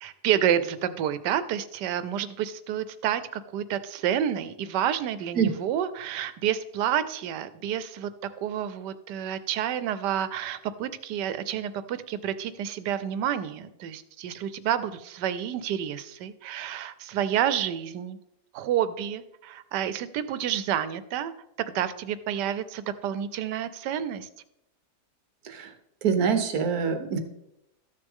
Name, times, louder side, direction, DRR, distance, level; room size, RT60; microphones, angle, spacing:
voice 1, 0.0-8.1 8.4-18.2 18.5-21.3 21.7-24.3, right 10 dB, 90° right, 14 dB, 1.2 m, -29 dB
voice 2, 26.0-27.2, right 6 dB, 65° right, 7 dB, 1.4 m, -24 dB
13.5 x 6.6 x 3.6 m, 0.84 s
omnidirectional pair, 1.8 m